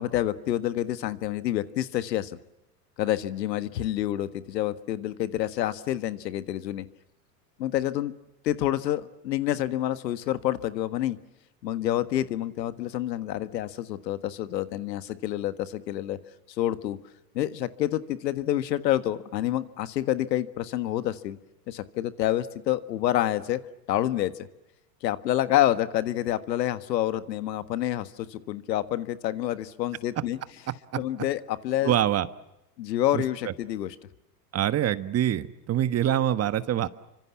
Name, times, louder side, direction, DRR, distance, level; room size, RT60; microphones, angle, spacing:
voice 1, 0.0-2.3 3.0-6.8 7.6-8.1 8.4-11.2 11.6-16.2 16.6-17.0 17.3-21.4 21.7-23.6 23.9-24.5 25.0-30.4 31.0-31.9 32.8-33.9, left 13 dB, 85° left, 12 dB, 1.7 m, -28 dB
voice 2, 31.8-32.3 33.1-33.5 34.5-36.9, right 11 dB, 30° right, 13 dB, 1.4 m, -25 dB
29.0 x 25.5 x 7.3 m, 0.91 s
hypercardioid pair, 110°, 49 cm